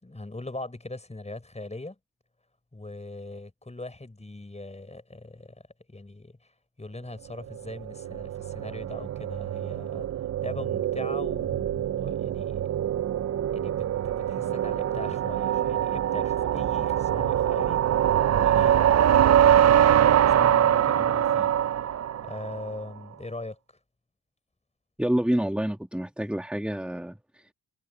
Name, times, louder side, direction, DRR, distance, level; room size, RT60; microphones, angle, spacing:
voice 1, 0.0-2.0 2.7-5.6 5.9-10.1 10.4-12.6 13.5-21.5 22.2-23.6, left 2 dB, 15° left, 5.4 m, -40 dB
sound 1, 7.5-22.7, right 10 dB, 40° right, 0.5 m, -24 dB
voice 2, 25.0-27.5, equal, 5° right, 1.9 m, -28 dB
cardioid pair, 85°, 40 cm